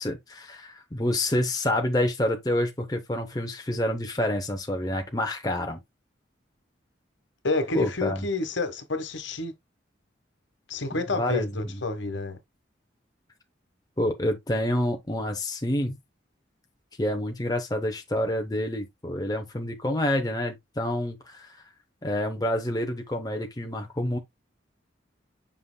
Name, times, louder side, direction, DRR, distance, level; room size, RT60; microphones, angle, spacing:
voice 1, 0.0-5.8 7.7-8.2 11.2-11.5 14.0-16.0 17.0-21.6 22.0-24.2, left 1 dB, 20° left, 0.8 m, -28 dB
voice 2, 7.4-9.5 10.7-12.4, left 3 dB, 70° left, 1.3 m, -29 dB
7.6 x 5.6 x 2.2 m
head